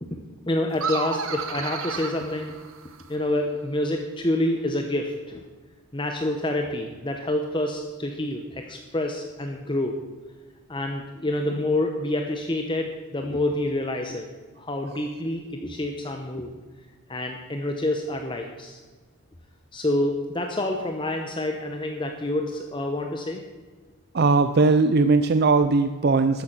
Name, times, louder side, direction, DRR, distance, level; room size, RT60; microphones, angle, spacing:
voice 1, 0.0-2.5 3.1-5.4 5.9-10.0 10.7-14.3 14.6-16.5 17.1-18.8 19.7-23.4, left 1 dB, 20° left, 4 dB, 0.8 m, -27 dB
sound 1, 0.7-3.2, right 5 dB, 75° right, 1.3 m, -32 dB
voice 2, 24.1-26.4, right 3 dB, 50° right, 10 dB, 0.5 m, -19 dB
13.0 x 9.4 x 6.0 m, 1.3 s
head